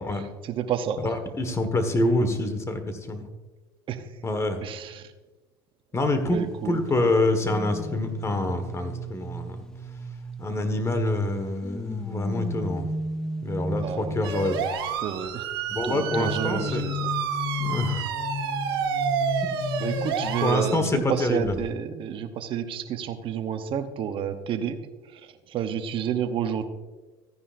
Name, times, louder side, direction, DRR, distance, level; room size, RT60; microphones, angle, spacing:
voice 1, 0.0-1.1 3.9-4.2 4.6-5.1 6.3-7.1 13.8-14.2 15.0-15.5 15.8-17.1 19.8-25.2 25.5-26.6, right 8 dB, 45° right, 7 dB, 0.9 m, -30 dB
voice 2, 1.0-3.3 4.2-4.6 5.9-9.6 10.4-12.9 13.4-14.6 15.7-16.8 17.6-18.0 19.9-21.5, left 2 dB, 25° left, 8 dB, 1.5 m, -26 dB
sound 1, 7.4-11.0 11.6-14.9 15.9-21.1 21.4-21.7, left 2 dB, 5° left, 1.0 m, -34 dB
sound 2, 14.2-20.8, right 8 dB, 80° right, 1.5 m, -29 dB
14.5 x 9.8 x 2.6 m, 1.2 s
hypercardioid pair, 90°, 12 cm